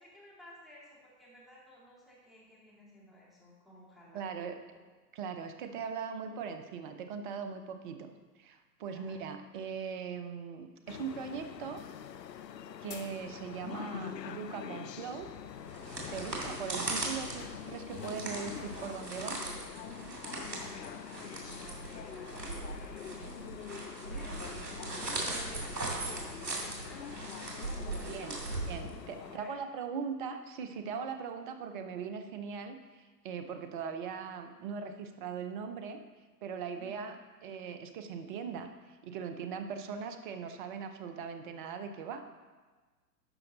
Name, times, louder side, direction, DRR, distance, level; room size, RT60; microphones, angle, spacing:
voice 1, 0.0-4.3 8.9-9.2 20.5-23.3 24.1-28.6 29.2-29.6 36.7-37.0, left 1 dB, ahead, -7 dB, 2.2 m, -55 dB
voice 2, 4.1-4.6 5.1-8.1 8.4-11.8 12.8-15.3 16.1-19.4 27.9-28.4 28.6-36.0 36.4-37.2 37.4-42.2, right 6 dB, 30° right, 8 dB, 0.7 m, -40 dB
sound 1, 10.9-29.4, left 9 dB, 80° left, 0.6 m, -45 dB
sound 2, 15.6-29.3, right 2 dB, 80° right, 2.6 m, -39 dB
11.5 x 5.5 x 3.9 m, 1.3 s
figure-of-eight pair, 120°, 49 cm